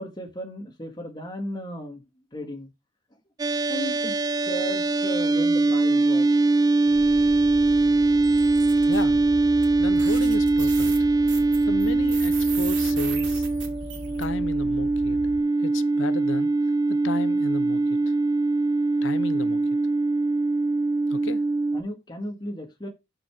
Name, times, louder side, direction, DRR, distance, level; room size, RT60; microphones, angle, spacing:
voice 1, 0.0-2.0 2.3-2.7 3.7-4.2 4.4-6.3 21.7-22.9, equal, 25° left, 1.8 m, -35 dB
sound 1, 3.4-21.8, right 3 dB, 20° right, 0.3 m, -22 dB
sound 2, 6.9-15.4, left 1 dB, 65° left, 2.0 m, -39 dB
sound 3, 8.2-9.0 9.6-9.7 10.0-14.2, right 8 dB, 75° right, 2.4 m, -37 dB
voice 2, 8.8-9.3 9.8-10.9 11.7-13.5 14.2-15.2 15.6-16.5 16.9-17.8 19.0-19.6 21.1-21.4, left 3 dB, 85° left, 0.7 m, -34 dB
6.6 x 5.6 x 4.8 m
head